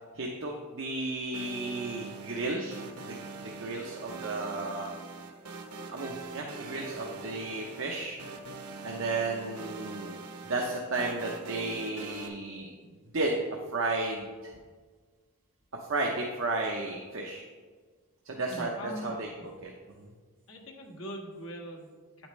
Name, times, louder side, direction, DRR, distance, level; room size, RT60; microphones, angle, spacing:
voice 1, 0.1-4.9 5.9-8.2 8.8-10.1 10.4-12.7 13.1-13.4 13.7-14.5 15.9-17.4 18.3-18.7 19.0-19.3 19.6-19.7 20.0-20.1, right 2 dB, 60° right, 0 dB, 0.8 m, -33 dB
sound 1, 1.3-12.3, right 3 dB, 85° right, 1.0 m, -43 dB
voice 2, 18.5-19.1 20.5-22.3, equal, 65° left, 1 dB, 1.5 m, -41 dB
9.0 x 8.5 x 3.2 m, 1.5 s
head